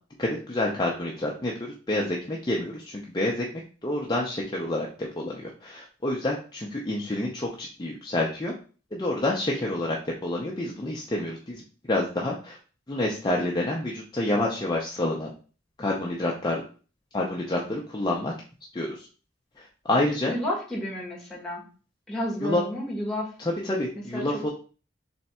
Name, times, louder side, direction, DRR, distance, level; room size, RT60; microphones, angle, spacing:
voice 1, 0.2-8.5 8.9-11.6 11.9-12.6 12.9-15.3 15.8-16.6 17.1-18.3 18.7-19.1 19.6-20.3 22.4-22.6 23.4-24.5, left 1 dB, 20° left, -2 dB, 0.6 m, -28 dB
voice 2, 20.3-21.6 22.1-23.3 23.9-24.5, left 1 dB, 5° left, -4 dB, 1.3 m, -31 dB
3.5 x 3.3 x 4.2 m, 0.38 s
head